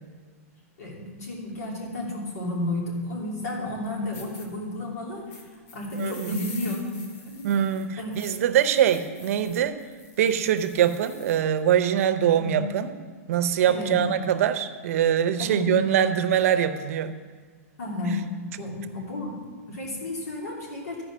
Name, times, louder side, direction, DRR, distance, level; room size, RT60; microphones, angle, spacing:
voice 1, 0.8-5.4 5.7-6.8 7.2-7.7 8.0-8.1 12.3-12.6 13.7-14.0 15.4-15.7 17.8-18.2 18.6-19.4 19.7-21.0, left 1 dB, 90° left, -2 dB, 3.1 m, -32 dB
sound 1, 4.1-4.5 5.3-11.4, left 3 dB, 55° left, 1.5 m, -46 dB
voice 2, 6.0-6.4 7.4-9.8 10.2-12.9 13.3-17.1, right 9 dB, 65° right, 9 dB, 0.7 m, -23 dB
13.5 x 5.0 x 6.1 m, 1.5 s
supercardioid pair, 160°, 8 cm